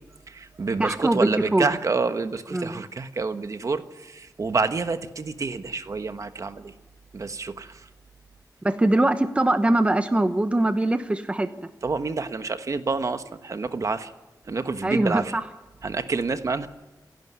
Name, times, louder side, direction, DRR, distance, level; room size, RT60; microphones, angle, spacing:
voice 1, 0.3-6.7 7.1-7.9 11.8-14.1 14.4-15.3 15.8-16.7, right 4 dB, 50° right, 9 dB, 1.3 m, -28 dB
voice 2, 0.8-1.7 2.5-2.8 8.6-11.5 14.8-15.4, right 1 dB, 15° right, 9 dB, 1.0 m, -22 dB
27.5 x 11.5 x 9.5 m, 1.1 s
wide cardioid pair, 130°, 7 cm